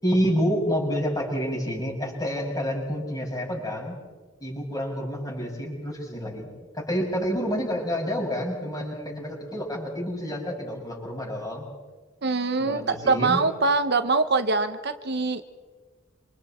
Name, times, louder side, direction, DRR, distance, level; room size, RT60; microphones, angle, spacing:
voice 1, 0.0-4.0 4.4-6.5 6.7-11.7 12.6-13.4, equal, 20° left, -1 dB, 6.6 m, -28 dB
voice 2, 12.2-15.4, right 3 dB, 55° right, 9 dB, 1.0 m, -23 dB
27.5 x 27.0 x 4.4 m, 1.3 s
head